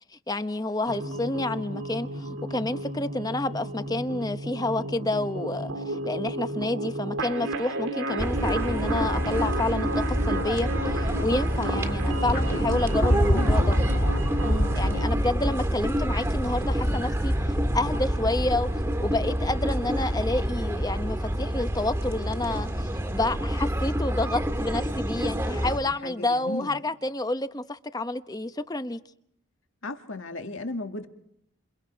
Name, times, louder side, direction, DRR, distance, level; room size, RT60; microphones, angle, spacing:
voice 1, 0.3-13.8 14.4-29.0, left 2 dB, 15° left, 0.9 m, -29 dB
sound 1, 0.9-15.1, right 1 dB, 80° right, 2.3 m, -33 dB
sound 2, 8.2-25.8, equal, 10° right, 1.7 m, -27 dB
sound 3, 12.3-19.4 20.6-20.7, equal, 45° left, 3.8 m, -27 dB
voice 2, 13.1-13.5 25.8-26.8 29.8-31.1, left 2 dB, 65° left, 2.1 m, -35 dB
29.5 x 28.5 x 4.6 m
head